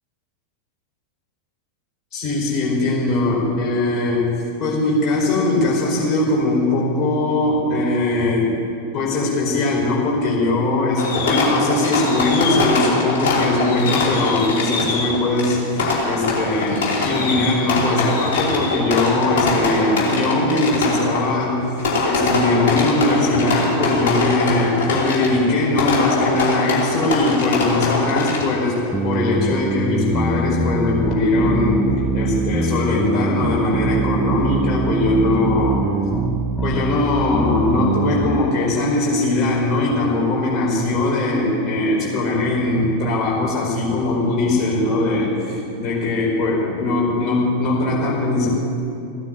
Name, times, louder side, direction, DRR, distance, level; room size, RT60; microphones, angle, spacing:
voice 1, 2.1-4.3 4.6-8.6 8.9-15.6 16.0-21.6 22.0-35.8 36.6-48.5, left 2 dB, 30° left, -4 dB, 4.9 m, -20 dB
Fireworks, 11.0-28.7, left 3 dB, 55° left, 3.1 m, -23 dB
sound 1, 28.9-38.4, right 3 dB, 10° right, 0.8 m, -23 dB
15.5 x 9.6 x 8.2 m, 2.5 s
figure-of-eight pair, 90°, 0 cm